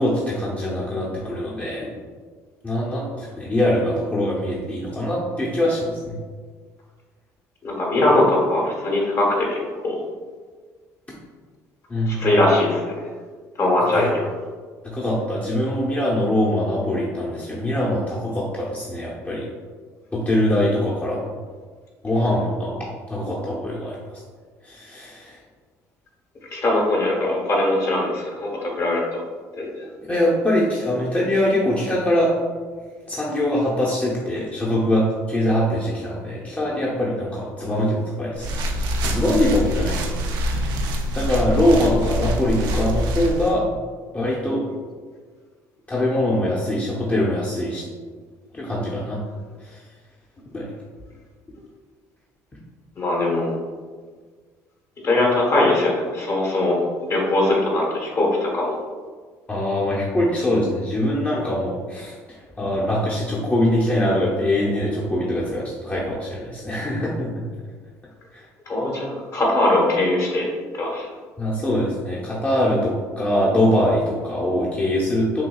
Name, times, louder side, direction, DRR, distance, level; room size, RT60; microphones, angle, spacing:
voice 1, 0.0-1.9 2.6-6.2 11.9-12.4 13.9-14.1 14.8-19.4 20.1-21.3 22.0-24.2 24.6-25.4 30.0-32.3 33.1-38.5 39.0-40.2 40.4-43.7 44.1-44.6 45.9-47.8 48.5-49.2 49.6-49.8 50.5-50.7 59.5-67.5 68.3-68.5 71.4-75.4, left 1 dB, 20° left, -5 dB, 0.8 m, -23 dB
voice 2, 7.6-9.6 9.8-10.0 12.1-13.1 13.6-14.2 26.5-29.2 29.6-29.8 53.0-53.5 55.0-56.8 57.1-58.8 68.7-70.5 70.7-71.0, left 1 dB, 45° left, -2 dB, 1.4 m, -21 dB
sound 1, 38.3-43.5, equal, 75° right, 0.5 m, -25 dB
5.8 x 2.7 x 2.3 m, 1.5 s
supercardioid pair, 70°, 7 cm